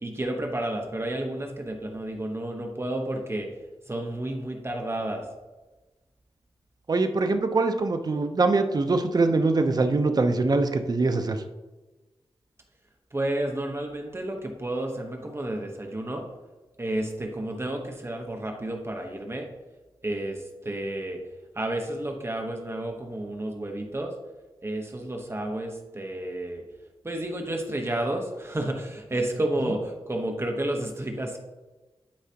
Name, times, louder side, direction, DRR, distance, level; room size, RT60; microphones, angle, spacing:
voice 1, 0.0-3.5 3.8-5.3 13.1-16.3 16.8-19.5 20.0-21.2 21.5-24.1 24.6-26.6 27.0-31.4, right 1 dB, 25° right, 2 dB, 1.1 m, -31 dB
voice 2, 6.9-11.4, right 3 dB, 40° right, 7 dB, 0.7 m, -23 dB
11.5 x 4.9 x 2.9 m, 1.1 s
wide cardioid pair, 105°, 10 cm